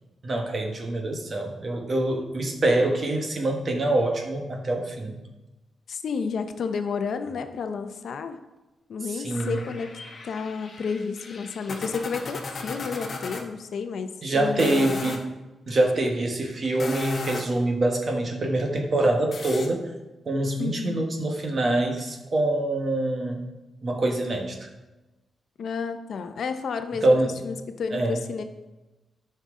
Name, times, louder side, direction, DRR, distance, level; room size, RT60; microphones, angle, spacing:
voice 1, 0.2-5.2 9.1-9.6 14.2-15.2 15.7-19.9 20.2-23.4 23.8-24.7 27.0-27.3 27.9-28.2, right 2 dB, 35° right, 2 dB, 1.3 m, -25 dB
voice 2, 5.9-8.4 8.9-9.9 10.2-15.2 20.6-21.1 25.6-28.4, left 5 dB, 60° left, 8 dB, 0.6 m, -31 dB
sound 1, 9.3-13.4 14.5-15.2 16.6-17.6 19.3-19.7, left 3 dB, 35° left, 1.1 m, -36 dB
13.5 x 5.5 x 3.7 m, 1.1 s
wide cardioid pair, 170°, 0 cm